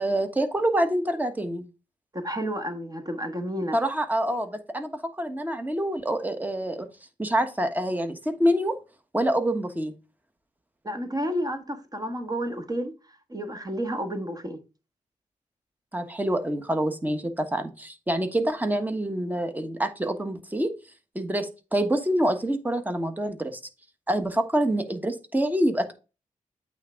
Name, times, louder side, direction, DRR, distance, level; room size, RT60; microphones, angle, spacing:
voice 1, 0.0-1.6 3.7-6.9 7.2-8.8 9.1-9.9 15.9-20.7 21.1-23.6 24.1-25.9, right 1 dB, 10° right, 1.3 m, -26 dB
voice 2, 2.1-3.8 10.8-14.6, equal, 25° right, 1.5 m, -31 dB
8.6 x 3.7 x 4.5 m
cardioid pair, 70°, 14 cm